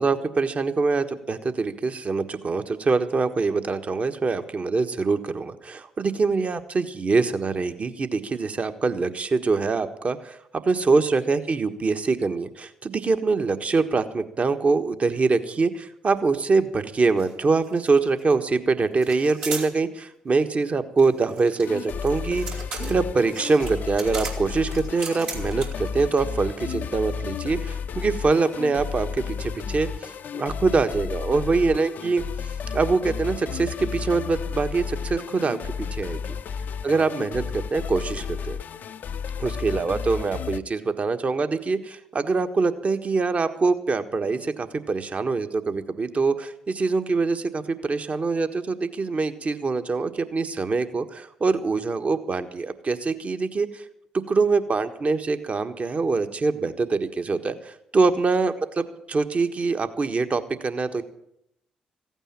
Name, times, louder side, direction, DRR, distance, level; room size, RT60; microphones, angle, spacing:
voice 1, 0.0-32.2 32.7-36.2 36.8-38.6 39.4-53.8 54.3-61.0, right 4 dB, 40° right, 8 dB, 1.4 m, -24 dB
sound 1, 17.2-17.3 17.6-18.3 19.0-19.7 21.0-25.9, right 4 dB, 75° right, 2.8 m, -36 dB
sound 2, 21.6-40.6, left 6 dB, 60° left, 0.6 m, -32 dB
15.5 x 9.1 x 8.8 m, 0.76 s
hypercardioid pair, 45°, 3 cm